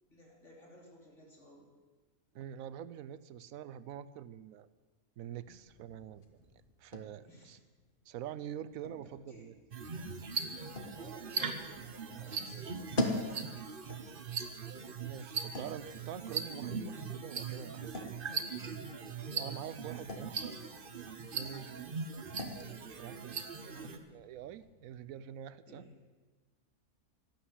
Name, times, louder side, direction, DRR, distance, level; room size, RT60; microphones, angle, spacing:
voice 1, 0.1-1.7 7.2-7.6 9.0-9.5 10.7-13.4 18.2-18.9 23.5-24.0 25.7-26.0, equal, 50° left, -1 dB, 3.5 m, -56 dB
voice 2, 2.3-4.7 5.2-6.4 6.8-7.6 8.1-9.5 10.2-10.3 15.0-18.1 19.4-20.6 21.3-22.0 23.0-23.4 24.1-25.8, right 10 dB, 70° right, 15 dB, 1.0 m, -45 dB
sound 1, 5.5-25.0, left 1 dB, 35° left, 1.5 m, -45 dB
sound 2, 9.7-24.0, right 5 dB, 40° right, 1.0 m, -40 dB
12.0 x 11.5 x 8.2 m, 1.3 s
omnidirectional pair, 1.6 m